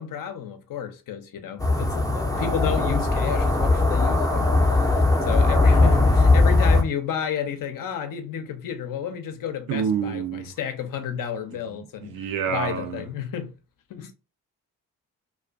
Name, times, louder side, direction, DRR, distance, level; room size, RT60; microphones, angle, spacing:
voice 1, 0.0-4.5 4.8-13.5 13.9-14.1, left 8 dB, 55° left, 0.6 m, -31 dB
sound 1, 1.6-6.8, left 2 dB, 10° left, 0.5 m, -19 dB
voice 2, 9.7-10.5 12.0-13.0, right 7 dB, 60° right, 0.6 m, -27 dB
2.4 x 2.3 x 2.3 m
hypercardioid pair, 40°, 39 cm